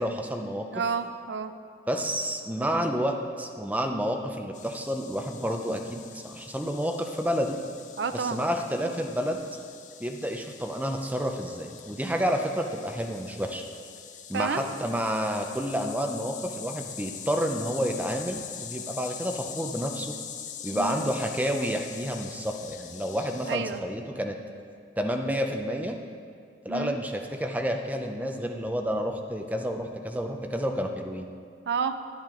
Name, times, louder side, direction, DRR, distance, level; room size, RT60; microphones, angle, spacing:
voice 1, 0.0-0.8 1.9-7.6 8.1-9.4 10.0-13.6 14.3-20.2 20.6-24.4 25.0-26.0 26.6-31.3, equal, 10° right, 3 dB, 0.6 m, -30 dB
voice 2, 0.7-1.5 8.0-8.4 14.3-14.6 20.7-21.1 23.5-23.8 26.7-27.0 31.7-32.0, right 5 dB, 85° right, 9 dB, 0.5 m, -30 dB
sound 1, 4.5-23.6, left 8 dB, 45° left, 0.6 m, -43 dB
10.5 x 10.0 x 3.8 m, 2.2 s
head